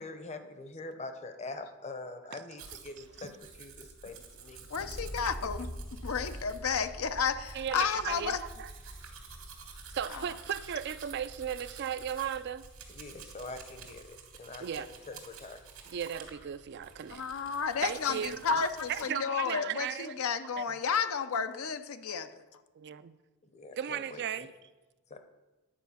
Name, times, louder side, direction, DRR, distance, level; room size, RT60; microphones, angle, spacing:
voice 1, 0.0-4.7 12.9-15.6 18.3-18.4 23.5-24.2 25.1-25.2, left 2 dB, 30° left, 8 dB, 0.8 m, -44 dB
Domestic sounds home sounds, 2.6-19.1, right 6 dB, 85° right, 2.0 m, -51 dB
sound 1, 3.4-14.2, equal, ahead, 0.5 m, -47 dB
voice 2, 4.7-5.7 6.0-8.4 10.1-10.2 17.1-22.3, left 6 dB, 75° left, 10 dB, 0.6 m, -32 dB
voice 3, 7.5-8.7 9.9-12.7 14.6-14.9 15.9-17.2 17.8-18.4 18.9-20.3 20.6-20.7 22.8-23.2 23.7-24.5, right 8 dB, 50° right, 13 dB, 0.4 m, -36 dB
10.0 x 5.0 x 7.0 m, 1.1 s
head